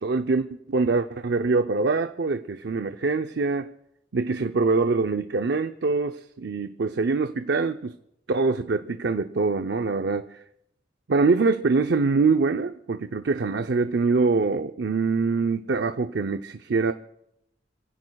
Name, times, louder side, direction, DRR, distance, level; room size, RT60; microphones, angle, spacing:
voice 1, 0.0-3.7 4.1-8.0 8.3-10.4 11.1-16.9, right 4 dB, 70° right, 7 dB, 0.6 m, -24 dB
28.0 x 16.0 x 2.3 m, 0.80 s
head